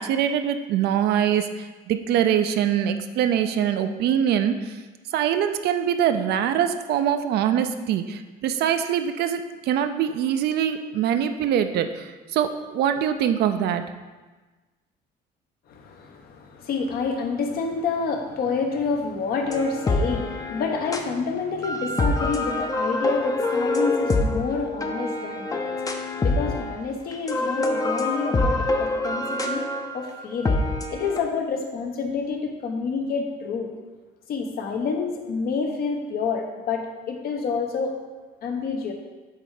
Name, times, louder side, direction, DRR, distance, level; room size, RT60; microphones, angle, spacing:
voice 1, 0.0-4.8 5.1-13.8, right 9 dB, 75° right, 8 dB, 0.5 m, -23 dB
voice 2, 15.7-29.7 29.9-30.6 30.9-33.7 34.3-37.9 38.4-38.9, left 5 dB, 65° left, 3 dB, 1.1 m, -28 dB
sound 1, 19.5-21.1 21.6-26.8 27.1-31.2, left 2 dB, 20° left, 0.6 m, -25 dB
8.1 x 3.3 x 4.9 m, 1.3 s
cardioid pair, 110°, 17 cm